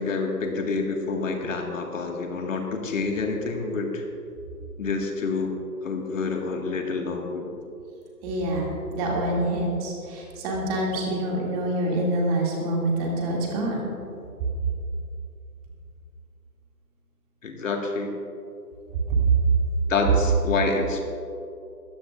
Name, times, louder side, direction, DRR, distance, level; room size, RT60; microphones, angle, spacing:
voice 1, 0.0-4.0 4.8-5.5 5.8-7.5 17.4-18.1 19.9-21.0, left 3 dB, 50° left, 2 dB, 1.8 m, -27 dB
voice 2, 8.2-13.9 19.1-19.2, right 1 dB, 25° right, -2 dB, 2.5 m, -26 dB
20.5 x 14.5 x 2.5 m, 2.6 s
figure-of-eight pair, 150°, 49 cm